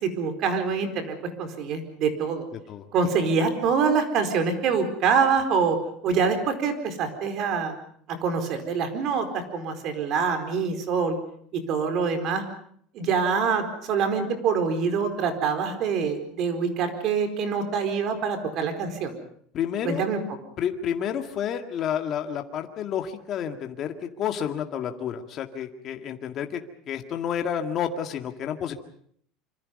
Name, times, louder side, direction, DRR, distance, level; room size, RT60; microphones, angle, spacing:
voice 1, 0.0-2.5 2.9-5.8 6.0-7.7 8.2-11.2 11.5-12.4 12.9-19.1 19.8-20.2, right 5 dB, 45° right, 7 dB, 4.6 m, -25 dB
voice 2, 2.5-2.9 19.5-20.0 20.6-28.7, left 8 dB, 35° left, 5 dB, 1.9 m, -30 dB
26.5 x 25.5 x 5.4 m, 0.63 s
cardioid pair, 150°, 0 cm